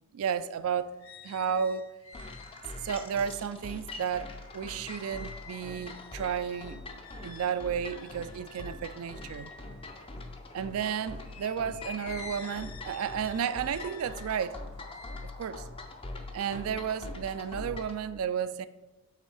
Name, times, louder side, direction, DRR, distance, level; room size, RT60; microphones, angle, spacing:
voice 1, 0.1-1.0 1.2-1.9 2.8-6.8 7.2-9.5 10.5-14.6 15.4-15.7 16.3-18.7, right 7 dB, 75° right, 0.3 m, -32 dB
sound 1, 0.5-10.7 11.2-16.7 17.1-17.7, left 4 dB, 70° left, 0.8 m, -50 dB
sound 2, 2.1-18.0, left 2 dB, 25° left, 0.5 m, -43 dB
8.0 x 3.4 x 4.8 m
head